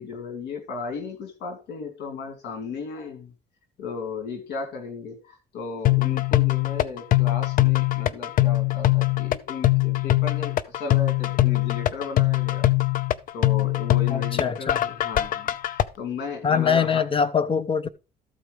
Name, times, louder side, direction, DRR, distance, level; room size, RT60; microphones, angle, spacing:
voice 1, 0.0-3.3 3.8-12.7 13.3-17.0, left 5 dB, 80° left, 2.7 m, -35 dB
sound 1, 5.8-15.8, left 16 dB, 55° left, 0.7 m, -22 dB
voice 2, 14.1-14.8 16.4-17.9, left 6 dB, 30° left, 1.0 m, -23 dB
13.5 x 4.8 x 5.2 m
cardioid pair, 110°, 17 cm